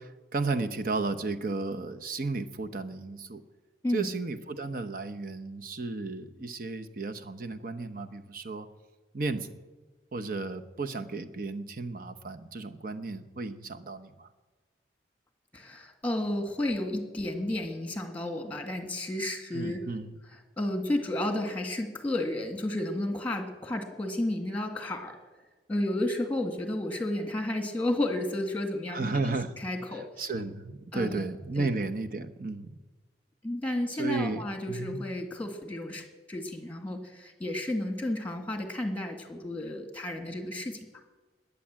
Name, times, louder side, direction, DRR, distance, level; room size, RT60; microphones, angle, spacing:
voice 1, 0.0-3.4 3.9-8.7 9.1-9.5 10.1-14.3 19.5-20.2 28.9-29.5 29.9-32.8 34.0-35.0, right 3 dB, 55° right, 7 dB, 1.0 m, -34 dB
voice 2, 15.5-19.8 20.6-25.2 25.7-29.1 29.6-30.1 30.9-31.3 31.6-31.7 33.4-40.8, left 1 dB, 10° left, 5 dB, 2.0 m, -32 dB
20.5 x 8.6 x 7.6 m, 1.2 s
head